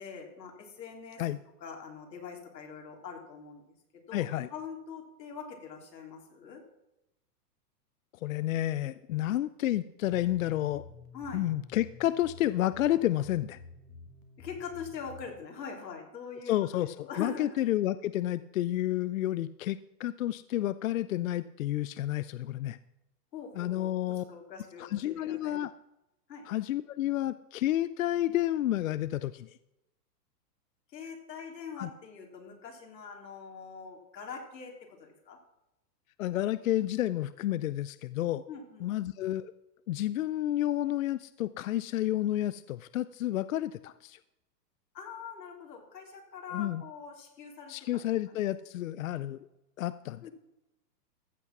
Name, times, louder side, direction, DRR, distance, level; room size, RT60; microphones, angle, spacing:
voice 1, 0.0-1.2 1.6-3.6 3.9-4.2 4.5-6.6 11.1-11.5 14.4-17.6 23.3-25.5 26.3-26.5 30.9-35.4 38.5-38.9 44.9-47.8 50.2-50.3, left 6 dB, 85° left, 2 dB, 3.5 m, -43 dB
voice 2, 4.1-4.5 8.2-10.8 11.3-13.6 16.5-22.8 23.6-24.2 24.8-25.7 26.5-29.5 31.8-31.9 36.2-38.4 38.8-39.5 39.9-44.2 46.5-46.8 47.7-49.4 49.8-50.3, left 13 dB, 55° left, 15 dB, 0.5 m, -30 dB
sound 1, 10.1-15.4, left 3 dB, 20° left, 1.1 m, -51 dB
14.5 x 8.2 x 6.0 m, 0.91 s
hypercardioid pair, 165°, 49 cm